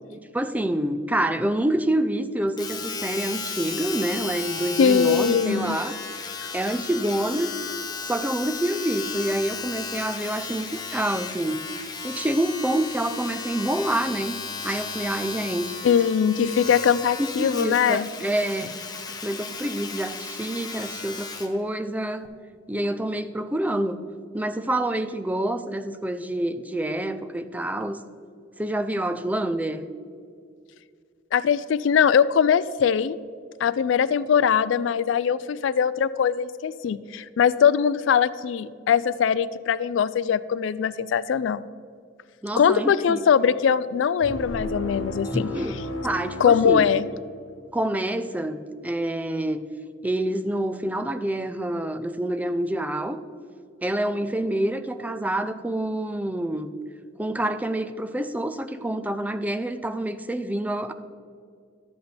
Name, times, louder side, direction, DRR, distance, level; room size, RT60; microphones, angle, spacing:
voice 1, 0.1-6.0 6.5-7.5 8.0-11.6 12.0-14.4 14.6-15.7 17.2-18.8 19.1-22.3 22.7-24.0 24.3-28.0 28.6-29.8 42.4-43.2 45.3-45.8 46.0-46.9 47.7-49.6 50.0-53.2 53.8-56.7 57.2-60.9, right 1 dB, 10° right, 10 dB, 0.3 m, -27 dB
Domestic sounds home sounds, 2.6-21.6 22.2-22.3, left 5 dB, 20° left, 0.8 m, -35 dB
voice 2, 4.8-5.8 6.4-6.5 15.8-18.1 31.3-33.2 33.6-41.6 42.6-45.5 46.4-47.1, left 7 dB, 70° left, 16 dB, 0.3 m, -21 dB
sound 1, 44.2-47.6, left 1 dB, 85° left, 0.9 m, -34 dB
12.5 x 8.1 x 3.3 m, 2.3 s
head